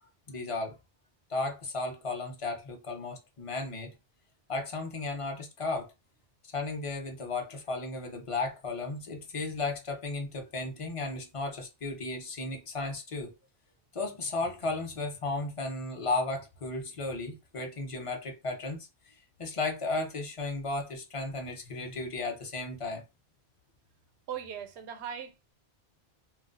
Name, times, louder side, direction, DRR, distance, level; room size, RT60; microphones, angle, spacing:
voice 1, 0.3-0.8 1.3-4.0 4.5-5.9 6.5-13.3 13.9-19.1 19.4-23.0, left 3 dB, 35° left, 0.7 m, -34 dB
voice 2, 24.3-25.5, right 8 dB, 90° right, 0.9 m, -39 dB
2.3 x 2.1 x 3.8 m
omnidirectional pair, 1.1 m